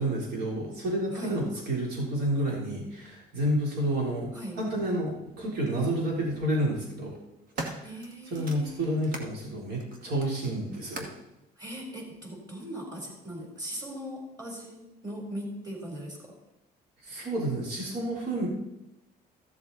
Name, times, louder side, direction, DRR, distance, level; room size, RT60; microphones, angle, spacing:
voice 1, 0.0-4.3 4.6-7.2 7.6-7.9 8.3-11.1 17.0-18.5, right 1 dB, 75° right, -3 dB, 3.7 m, -30 dB
sound 1, 4.9-5.0 6.1-6.5 7.0-9.3 9.8-11.3 12.1-12.2, right 2 dB, 55° right, 1.9 m, -41 dB
voice 2, 7.8-8.9 11.6-16.3, equal, 20° right, 1 dB, 3.6 m, -39 dB
14.5 x 7.3 x 4.1 m, 0.90 s
cardioid pair, 110°, 17 cm